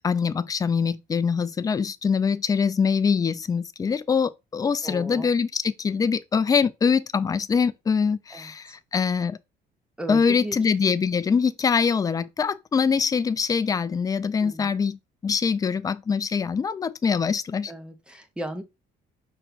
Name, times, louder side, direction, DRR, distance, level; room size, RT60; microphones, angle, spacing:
voice 1, 0.0-9.4 10.1-15.0 15.2-17.7, left 6 dB, 20° left, 0.4 m, -23 dB
voice 2, 4.8-5.3 8.3-8.5 10.0-10.6 14.4-14.7 17.7-18.6, right 1 dB, 5° right, 0.7 m, -35 dB
5.6 x 2.2 x 4.0 m
cardioid pair, 110°, 17 cm